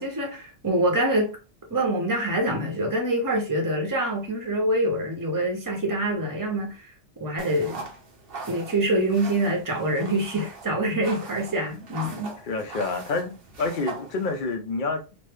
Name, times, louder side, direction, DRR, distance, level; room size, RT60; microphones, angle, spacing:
voice 1, 0.0-1.4 1.7-6.8 7.2-7.9 8.5-12.4, right 1 dB, 20° right, 0.7 m, -25 dB
sound 1, 7.4-14.6, right 3 dB, 55° right, 0.9 m, -41 dB
voice 2, 12.4-15.0, left 3 dB, 50° left, 0.7 m, -28 dB
3.1 x 2.1 x 3.4 m
omnidirectional pair, 1.2 m